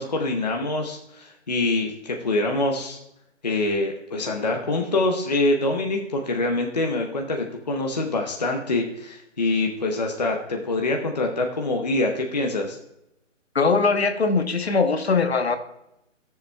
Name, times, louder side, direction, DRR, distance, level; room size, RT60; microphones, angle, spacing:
voice 1, 0.0-3.0 3.4-12.8, left 2 dB, 35° left, 2 dB, 0.8 m, -25 dB
voice 2, 13.5-15.6, left 4 dB, 55° left, 8 dB, 1.0 m, -21 dB
16.0 x 6.9 x 2.3 m, 0.83 s
hypercardioid pair, 175°, 38 cm